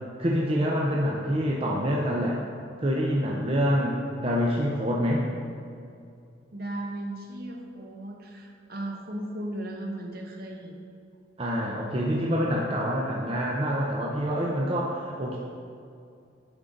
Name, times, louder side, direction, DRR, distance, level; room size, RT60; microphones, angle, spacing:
voice 1, 0.2-2.4 2.8-5.2 11.4-15.4, equal, 30° right, -3 dB, 0.6 m, -26 dB
voice 2, 6.5-10.8, right 1 dB, 50° right, 1 dB, 0.9 m, -36 dB
9.7 x 3.8 x 5.1 m, 2.4 s
head